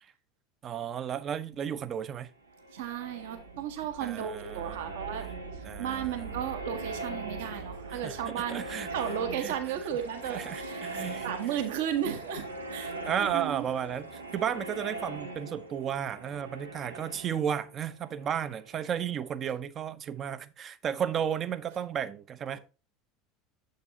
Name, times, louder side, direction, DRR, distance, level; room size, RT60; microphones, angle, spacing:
voice 1, 0.6-2.3 4.0-4.9 5.6-6.2 7.9-8.2 8.5-8.9 9.4-9.5 10.3-11.3 13.0-22.6, right 8 dB, 35° right, 0.7 m, -33 dB
sound 1, 2.4-19.1, right 2 dB, 90° right, 1.3 m, -41 dB
voice 2, 2.7-5.3 5.5-8.6 8.9-10.8 11.2-13.6, right 9 dB, 60° right, 1.3 m, -34 dB
7.9 x 6.6 x 2.8 m
figure-of-eight pair, 75°, 0 cm